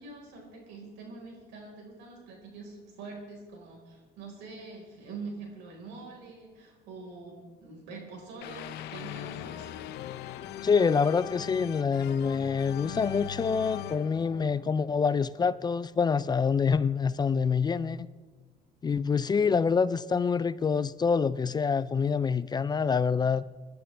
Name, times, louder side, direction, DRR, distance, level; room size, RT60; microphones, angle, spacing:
voice 1, 0.0-9.7, right 3 dB, 85° right, 4.5 m, -44 dB
sound 1, 8.4-15.4, left 12 dB, 80° left, 0.6 m, -40 dB
voice 2, 10.6-18.0 18.8-23.4, left 5 dB, 25° left, 0.4 m, -26 dB
22.5 x 11.5 x 3.3 m
cardioid pair, 110°, 17 cm